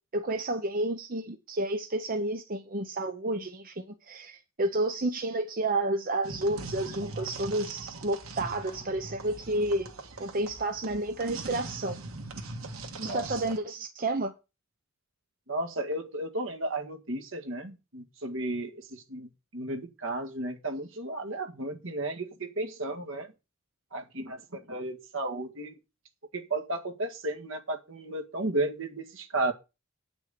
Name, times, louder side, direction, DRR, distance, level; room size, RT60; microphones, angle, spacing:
voice 1, 0.1-9.9 10.2-12.0 13.0-14.3, right 2 dB, 40° right, 0.9 m, -30 dB
sound 1, 6.2-13.6, right 2 dB, 85° right, 1.9 m, -41 dB
voice 2, 13.0-13.4 15.5-23.3 23.9-25.7 26.3-29.5, right 2 dB, 65° right, 1.9 m, -34 dB
9.4 x 6.2 x 6.7 m
head